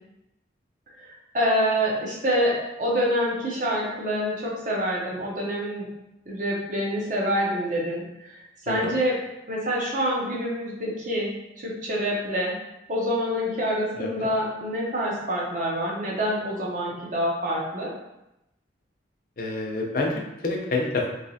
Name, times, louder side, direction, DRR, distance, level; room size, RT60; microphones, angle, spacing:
voice 1, 1.0-5.9 6.3-8.0 8.3-8.4 8.7-9.2 9.5-11.3 11.6-12.6 12.9-17.9, equal, 45° right, -4 dB, 0.8 m, -26 dB
voice 2, 14.0-14.3 19.4-21.1, left 2 dB, 50° left, 0 dB, 0.5 m, -28 dB
3.2 x 2.9 x 2.7 m, 0.90 s
head